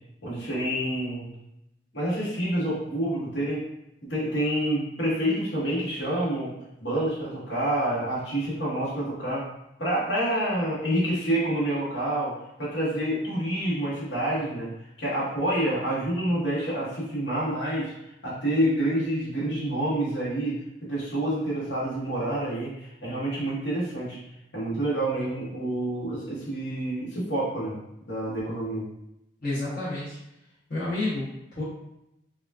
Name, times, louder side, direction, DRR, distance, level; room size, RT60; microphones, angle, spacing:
voice 1, 0.2-1.3 1.9-3.6 4.0-6.5 6.8-9.4 9.8-14.7 15.0-17.9 18.2-24.2 24.5-27.7 28.1-28.8, right 1 dB, 70° left, -7 dB, 1.3 m, -28 dB
voice 2, 29.4-30.2 30.7-31.6, left 2 dB, 50° left, -11 dB, 0.9 m, -30 dB
3.6 x 2.4 x 2.3 m, 0.85 s
head